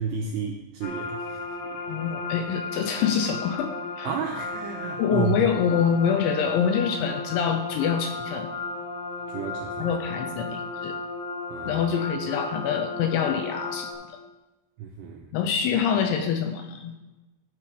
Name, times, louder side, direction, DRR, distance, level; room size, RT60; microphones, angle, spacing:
voice 1, 0.0-1.4 4.1-5.4 9.3-10.0 10.5-10.7 11.5-11.8 14.8-15.3, right 7 dB, 85° right, 1 dB, 2.4 m, -32 dB
sound 1, 0.8-13.9, left 3 dB, 65° left, 4.7 m, -34 dB
voice 2, 1.9-4.1 5.0-8.5 9.8-11.0 11.7-13.9 15.3-16.9, left 7 dB, 80° left, 6 dB, 2.8 m, -25 dB
14.5 x 6.9 x 5.0 m, 1.1 s
omnidirectional pair, 5.9 m